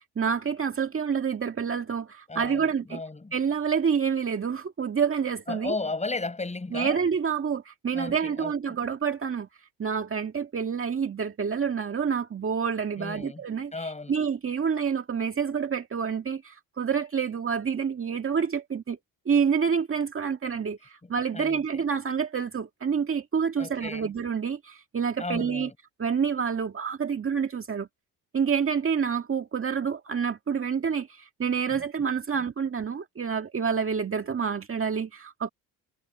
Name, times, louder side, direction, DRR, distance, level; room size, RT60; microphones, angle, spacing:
voice 1, 0.0-3.0 3.3-5.7 6.7-9.5 9.8-19.0 19.3-25.7 26.0-27.9 28.3-35.5, right 6 dB, 35° right, 1.9 m, -28 dB
voice 2, 2.3-3.3 5.5-7.0 7.9-8.8 13.0-13.4 13.7-14.1 21.3-21.8 23.6-24.1 25.2-25.7 31.7-31.8, left 3 dB, 20° left, 7.0 m, -35 dB
cardioid pair, 100°, 36 cm